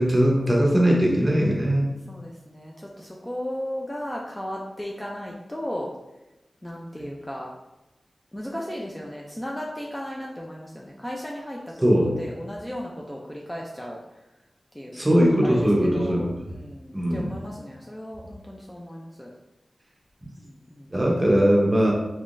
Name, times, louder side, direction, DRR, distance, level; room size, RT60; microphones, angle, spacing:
voice 1, 0.0-1.9 11.8-12.1 14.9-16.3 16.9-17.3 20.9-21.9, equal, 20° right, -2 dB, 0.8 m, -20 dB
voice 2, 2.1-5.9 6.6-7.5 8.3-14.0 14.7-14.9 15.2-19.3 20.4-20.9, equal, 15° left, -2 dB, 0.4 m, -35 dB
3.5 x 3.1 x 2.5 m, 0.97 s
wide cardioid pair, 80°, 0 cm